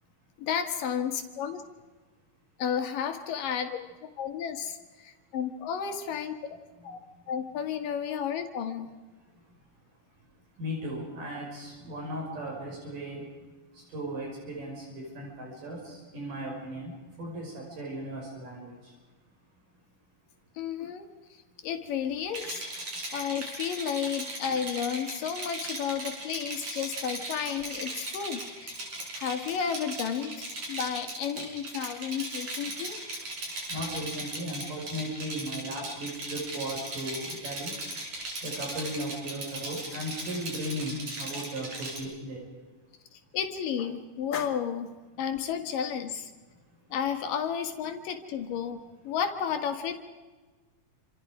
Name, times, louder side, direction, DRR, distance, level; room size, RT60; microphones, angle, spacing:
voice 1, 0.4-1.6 2.6-6.6 6.8-7.0 7.3-8.9 20.6-21.1 21.6-22.7 23.1-28.7 29.2-33.0 43.1-44.9 45.2-46.3 46.9-50.0, left 8 dB, 85° left, 6 dB, 3.6 m, -32 dB
voice 2, 6.8-7.2 9.3-19.0 22.9-23.0 33.5-37.8 38.4-42.5 46.5-46.9, equal, 70° right, -1 dB, 7.0 m, -37 dB
Rattle, 22.3-42.0, right 1 dB, 55° right, 7.1 m, -38 dB
28.5 x 27.0 x 5.0 m, 1.3 s
omnidirectional pair, 3.8 m